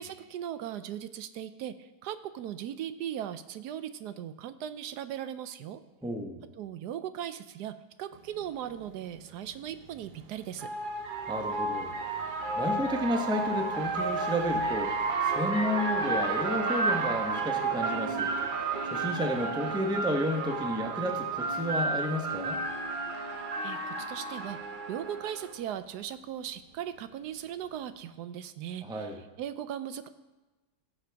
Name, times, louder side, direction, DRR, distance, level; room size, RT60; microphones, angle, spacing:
voice 1, 0.0-5.8 6.6-10.7 23.2-24.6 24.9-30.1, right 10 dB, 80° right, 11 dB, 1.1 m, -38 dB
voice 2, 6.0-6.4 11.3-11.9 12.6-18.3 18.8-22.6 28.8-29.2, equal, 5° right, 3 dB, 0.6 m, -32 dB
sound 1, 8.4-8.5 9.9-25.5, right 3 dB, 55° right, 0.5 m, -32 dB
16.5 x 6.7 x 3.4 m, 1.2 s
omnidirectional pair, 1.8 m